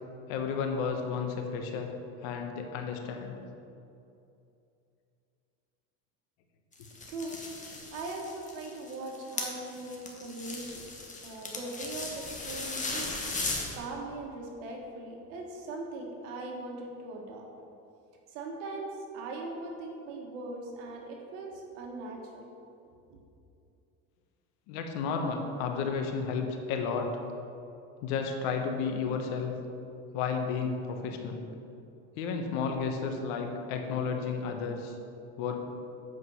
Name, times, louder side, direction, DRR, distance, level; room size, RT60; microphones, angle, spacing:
voice 1, 0.3-1.9 2.2-3.4 24.7-27.1 28.0-29.5 30.1-31.4 32.2-35.0 35.4-35.6, left 5 dB, 80° left, 4 dB, 1.2 m, -32 dB
sound 1, 6.7-13.8, left 3 dB, 20° left, 1.4 m, -37 dB
voice 2, 7.1-10.9 11.2-13.2 13.7-17.5 18.3-22.4, right 2 dB, 85° right, 1 dB, 1.5 m, -40 dB
8.1 x 5.2 x 5.6 m, 2.6 s
supercardioid pair, 115°, 37 cm